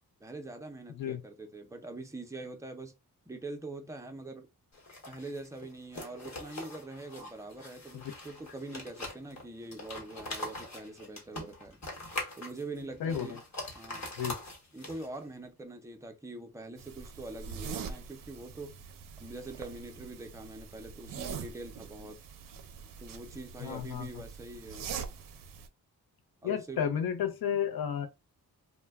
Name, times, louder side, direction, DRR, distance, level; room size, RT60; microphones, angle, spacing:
voice 1, 0.2-2.9 3.3-4.5 5.1-11.8 12.4-13.4 13.7-14.1 14.7-18.8 19.2-22.2 23.0-24.9 26.4-26.9, right 2 dB, 10° right, 0.4 m, -44 dB
sound 1, 4.7-15.3, left 2 dB, 45° left, 1.1 m, -43 dB
voice 2, 13.0-13.4 14.2-14.4 23.6-24.2 26.4-28.1, left 8 dB, 75° left, 0.5 m, -32 dB
sound 2, 16.8-25.7, right 6 dB, 60° right, 0.5 m, -43 dB
2.2 x 2.1 x 3.3 m
wide cardioid pair, 140°, 37 cm